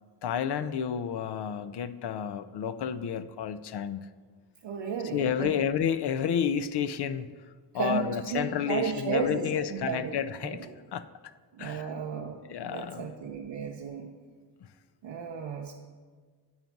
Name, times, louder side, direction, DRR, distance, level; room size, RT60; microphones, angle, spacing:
voice 1, 0.2-4.1 5.1-7.3 7.7-11.0 11.6-11.9 12.5-13.1, left 8 dB, 70° left, 13 dB, 0.5 m, -30 dB
voice 2, 4.6-5.5 7.7-10.1 10.5-10.7 11.5-12.4 12.7-14.1 15.0-15.7, right 6 dB, 80° right, -1 dB, 0.7 m, -33 dB
8.9 x 3.9 x 5.9 m, 1.5 s
cardioid pair, 55°, 42 cm